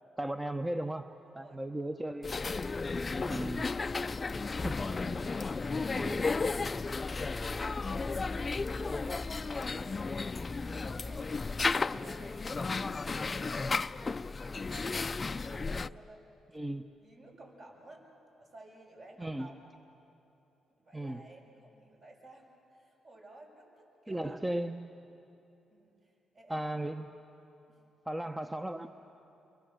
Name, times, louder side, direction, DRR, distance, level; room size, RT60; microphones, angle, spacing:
voice 1, 0.2-1.1 1.3-2.4 3.2-3.7 4.0-4.1 4.5-4.8 5.9-6.2 16.5-16.9 19.2-19.5 20.9-21.3 24.1-24.8 26.5-27.1 28.1-28.9, right 1 dB, 15° right, 7 dB, 0.9 m, -36 dB
voice 2, 1.3-1.7 4.8-16.2 17.0-18.1 18.4-19.7 20.7-24.8 25.7-26.6 27.7-27.8, right 1 dB, 55° right, -1 dB, 7.5 m, -55 dB
sound 1, 2.2-15.9, left 4 dB, 35° left, 0.5 m, -34 dB
29.5 x 24.0 x 7.8 m, 2.9 s
supercardioid pair, 65°, 0 cm